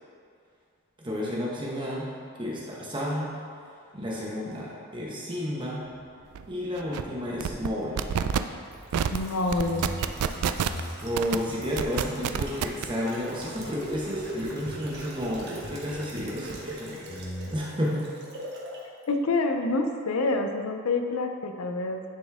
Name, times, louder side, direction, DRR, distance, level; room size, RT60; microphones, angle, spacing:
voice 1, 1.0-2.0 2.4-3.3 3.9-5.9 6.5-8.2 11.0-17.2 17.5-18.1, equal, 20° right, -5 dB, 1.1 m, -31 dB
sound 1, 5.8-9.2 9.6-16.8 17.1-17.6, equal, 35° left, 0.8 m, -44 dB
sound 2, 6.3-6.5 6.8-7.0 7.4-7.7 8.0-8.4 8.9-9.2 9.5-10.8 11.2-11.4 11.8-12.8, right 8 dB, 85° right, 0.3 m, -27 dB
sound 3, 8.4-18.8 19.1-19.2, right 1 dB, 50° right, 1.1 m, -41 dB
voice 2, 9.1-9.9 19.1-22.0, left 3 dB, 80° left, 5 dB, 0.6 m, -27 dB
10.0 x 4.2 x 3.5 m, 2.3 s
head